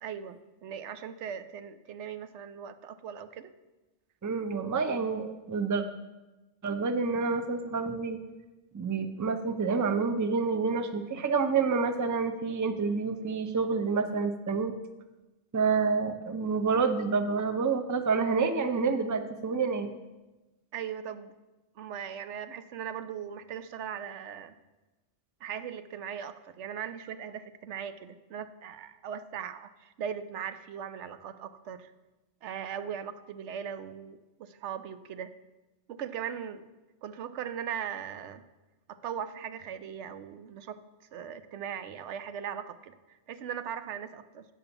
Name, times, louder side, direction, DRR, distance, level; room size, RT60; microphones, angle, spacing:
voice 1, 0.0-3.5 20.7-21.3 21.8-24.5 25.4-31.9 32.4-35.3 35.9-36.6 37.0-38.4 38.9-40.8 41.1-44.5, right 8 dB, 85° right, 12 dB, 0.9 m, -39 dB
voice 2, 4.2-5.8 6.6-8.2 8.7-14.7 15.5-19.9, right 5 dB, 25° right, 8 dB, 0.4 m, -28 dB
8.5 x 6.8 x 7.0 m, 1.1 s
omnidirectional pair, 1.2 m